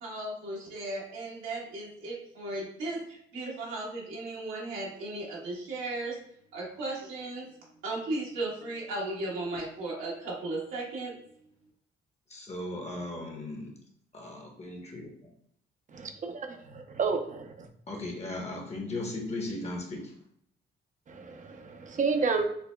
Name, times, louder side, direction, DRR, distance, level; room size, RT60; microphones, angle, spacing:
voice 1, 0.0-6.2 6.5-7.5 7.8-11.1, right 2 dB, 85° right, -5 dB, 1.4 m, -36 dB
voice 2, 12.3-13.7 14.1-15.1 17.9-20.0, left 2 dB, 35° left, 1 dB, 1.0 m, -37 dB
voice 3, 15.9-17.7 21.1-22.5, right 4 dB, 40° right, 5 dB, 0.6 m, -31 dB
5.7 x 2.1 x 2.2 m, 0.66 s
cardioid pair, 90°, 20 cm